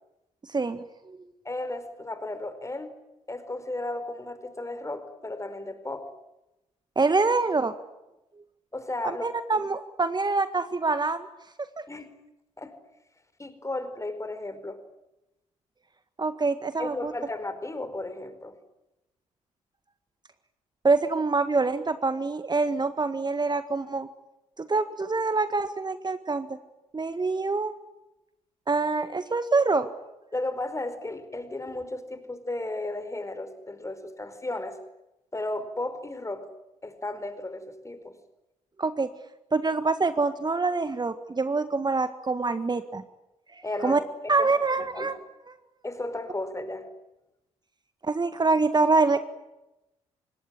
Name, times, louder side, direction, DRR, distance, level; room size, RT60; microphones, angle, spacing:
voice 1, 0.5-1.2 7.0-7.7 9.0-11.3 11.6-11.8 16.2-17.1 20.8-24.1 24.6-26.5 26.9-27.7 28.7-29.9 38.8-39.1 39.5-43.0 43.5-44.0 44.3-45.2 45.5-45.6 48.0-49.2, right 3 dB, 25° right, 11 dB, 1.8 m, -25 dB
voice 2, 1.4-2.9 3.3-6.1 8.7-9.3 11.9-12.2 12.6-12.7 13.4-14.8 16.8-18.6 30.3-34.8 35.3-36.5 36.8-38.2 43.6-44.5 44.8-45.1 45.8-46.9, left 2 dB, 15° left, 11 dB, 4.8 m, -34 dB
26.0 x 21.5 x 10.0 m, 0.94 s
figure-of-eight pair, 45°, 17 cm